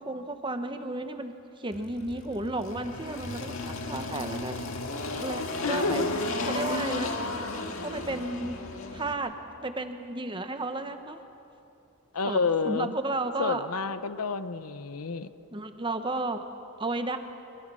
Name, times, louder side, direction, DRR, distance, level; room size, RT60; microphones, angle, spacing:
voice 1, 0.0-4.6 5.2-6.1 6.4-7.1 7.8-8.6 8.9-9.3 9.6-11.2 12.2-13.7 15.5-16.5 16.8-17.2, right 2 dB, 20° right, 7 dB, 1.1 m, -33 dB
Engine, 1.7-9.1, left 2 dB, 65° left, 1.9 m, -34 dB
voice 2, 5.6-6.4 12.1-12.9 13.4-15.3, left 4 dB, 90° left, 12 dB, 0.8 m, -29 dB
24.5 x 23.0 x 6.3 m, 2.8 s
head